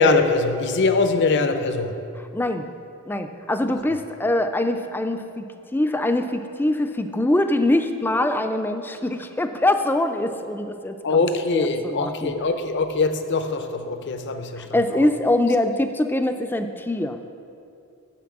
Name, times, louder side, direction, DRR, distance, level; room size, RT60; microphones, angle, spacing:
voice 1, 0.0-2.0 11.0-15.1, left 3 dB, 55° left, 8 dB, 0.6 m, -22 dB
voice 2, 2.3-2.7 3.1-5.4 5.7-11.2 11.5-12.3 14.6-17.2, left 1 dB, 10° left, 8 dB, 0.3 m, -23 dB
6.8 x 5.9 x 7.2 m, 2.5 s
head